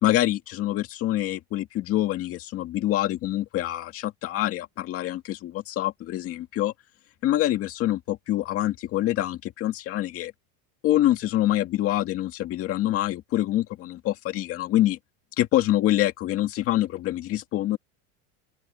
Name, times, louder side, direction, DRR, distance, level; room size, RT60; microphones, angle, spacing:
voice 1, 0.0-6.7 7.2-10.3 10.8-15.0 15.4-17.8, left 14 dB, 30° left, 2.0 m, -25 dB
open air
cardioid pair, 180°, 45 cm